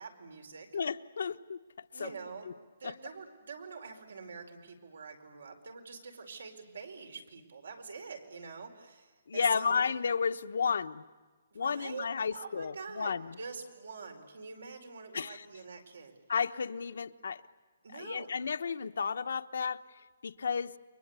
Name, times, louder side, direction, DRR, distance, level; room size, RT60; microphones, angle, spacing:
voice 1, 0.0-0.7 1.9-9.8 11.5-16.1 17.8-18.3, right 5 dB, 90° right, 4 dB, 4.7 m, -45 dB
voice 2, 0.7-1.6 1.9-2.1 2.5-2.6 2.8-2.9 9.3-11.0 11.5-13.4 15.1-15.4 16.3-17.4 17.9-19.8 20.2-20.7, left 6 dB, 75° left, 10 dB, 1.0 m, -32 dB
29.5 x 23.5 x 8.3 m, 1.4 s
hypercardioid pair, 175°, 0 cm